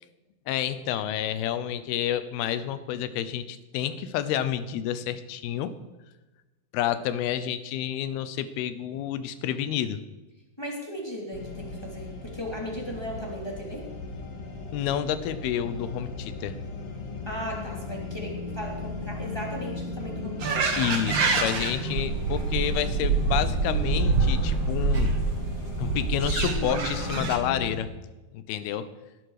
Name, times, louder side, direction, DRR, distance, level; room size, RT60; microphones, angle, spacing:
voice 1, 0.5-5.7 6.7-10.0 14.7-16.6 20.8-25.1 25.8-27.9 28.3-28.9, left 10 dB, 85° left, 13 dB, 2.8 m, -29 dB
voice 2, 10.6-13.8 17.3-20.8, equal, 10° left, -1 dB, 2.3 m, -36 dB
sound 1, 11.3-27.7, left 3 dB, 45° left, 2.5 m, -37 dB
sound 2, 20.4-27.4, right 4 dB, 60° right, 1.2 m, -26 dB
18.5 x 11.5 x 5.0 m, 1.1 s
omnidirectional pair, 4.4 m